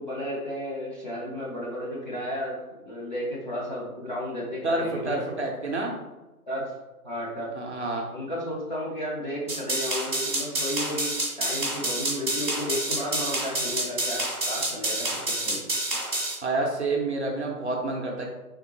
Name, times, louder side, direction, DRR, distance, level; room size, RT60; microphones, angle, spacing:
voice 1, 0.0-5.2 6.5-6.7 7.0-7.5 8.1-15.6, equal, 30° left, -7 dB, 0.6 m, -33 dB
voice 2, 4.6-5.9 7.5-8.1 16.4-18.3, right 2 dB, 50° right, -1 dB, 0.6 m, -28 dB
sound 1, 9.5-16.3, right 1 dB, 10° right, 0.6 m, -28 dB
3.6 x 3.5 x 2.9 m, 1.1 s
figure-of-eight pair, 145°, 46 cm